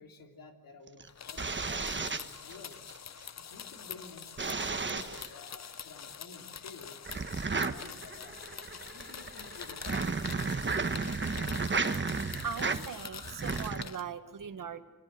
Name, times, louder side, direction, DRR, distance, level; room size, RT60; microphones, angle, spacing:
voice 1, 0.0-3.1 3.4-10.7, left 4 dB, 90° left, 4 dB, 3.3 m, -52 dB
sound 1, 0.9-3.0 4.4-5.3 7.0-13.8, right 4 dB, 35° right, 1.3 m, -33 dB
sound 2, 1.1-14.0, left 7 dB, 55° left, 0.8 m, -45 dB
voice 2, 12.1-14.8, right 6 dB, 75° right, 9 dB, 1.8 m, -40 dB
25.0 x 19.5 x 7.8 m, 1.1 s
wide cardioid pair, 90°, 33 cm